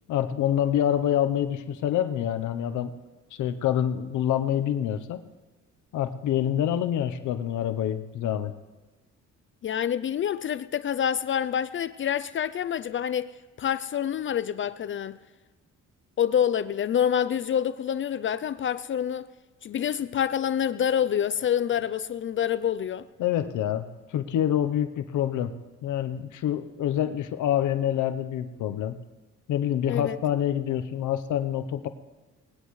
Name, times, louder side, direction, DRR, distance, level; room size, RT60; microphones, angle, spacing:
voice 1, 0.1-2.9 3.4-5.2 5.9-8.5 23.2-23.9 24.1-25.5 25.8-29.0 29.5-31.9, left 10 dB, 80° left, 0.8 m, -26 dB
voice 2, 9.6-15.2 16.2-19.3 19.6-23.1 29.9-30.2, left 9 dB, 40° left, 0.4 m, -27 dB
20.0 x 16.5 x 3.2 m
cardioid pair, 90°, 30 cm